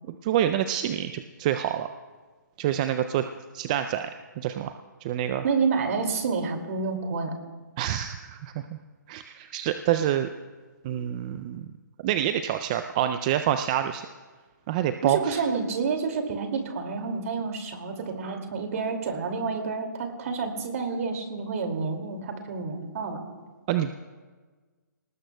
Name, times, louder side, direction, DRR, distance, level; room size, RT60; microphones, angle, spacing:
voice 1, 0.1-1.9 2.6-3.3 3.5-4.1 4.4-4.7 5.0-5.4 7.8-8.8 9.1-10.3 10.8-11.7 12.0-14.1 14.7-15.4 23.7-23.9, right 11 dB, 25° right, 9 dB, 0.3 m, -27 dB
voice 2, 5.4-7.3 15.0-23.2, right 4 dB, 50° right, 4 dB, 2.3 m, -29 dB
22.5 x 19.0 x 2.2 m, 1.4 s
hypercardioid pair, 150°, 10 cm